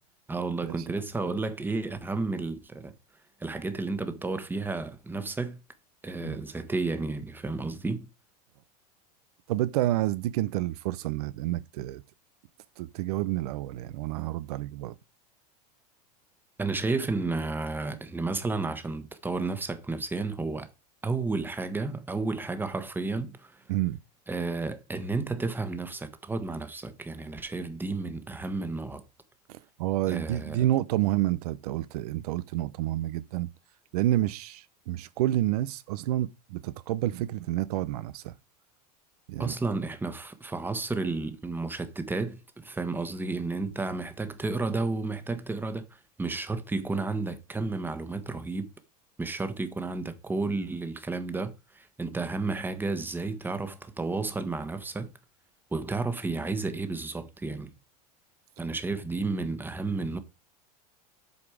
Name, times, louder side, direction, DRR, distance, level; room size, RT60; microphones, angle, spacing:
voice 1, 0.3-2.9 3.4-5.6 6.0-8.1 16.6-20.7 21.0-23.6 24.3-29.0 30.1-30.6 39.4-48.7 49.2-55.1 55.7-57.7 58.6-60.2, right 3 dB, 10° right, 1.3 m, -32 dB
voice 2, 9.5-12.0 12.8-14.9 23.7-24.0 29.5-33.5 33.9-38.3 39.3-39.5, right 14 dB, 70° right, 0.7 m, -29 dB
8.1 x 5.1 x 4.9 m
hypercardioid pair, 110°, 21 cm